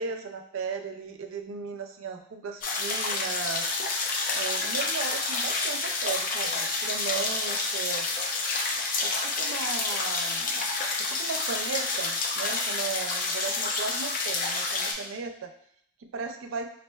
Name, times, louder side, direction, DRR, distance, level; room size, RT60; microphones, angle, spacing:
voice 1, 0.0-3.7 4.3-8.2 9.0-10.7 11.0-15.5 16.1-16.7, right 5 dB, 75° right, 6 dB, 0.4 m, -36 dB
sound 1, 2.6-14.9, left 3 dB, 40° left, 0.4 m, -29 dB
4.2 x 2.4 x 2.2 m, 0.67 s
head